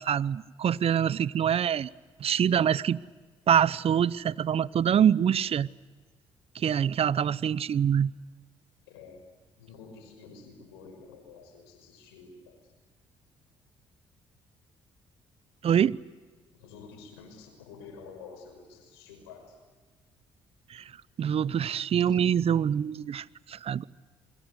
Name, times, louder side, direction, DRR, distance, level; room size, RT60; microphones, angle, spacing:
voice 1, 0.0-1.9 2.2-3.0 3.5-5.7 6.5-8.1 15.6-16.0 20.7-20.9 21.2-23.9, right 8 dB, 50° right, 20 dB, 0.8 m, -25 dB
voice 2, 8.9-9.2 9.6-12.6 16.5-19.6, left 5 dB, 85° left, 5 dB, 6.0 m, -49 dB
28.0 x 23.0 x 8.2 m, 1.4 s
hypercardioid pair, 55°, 13 cm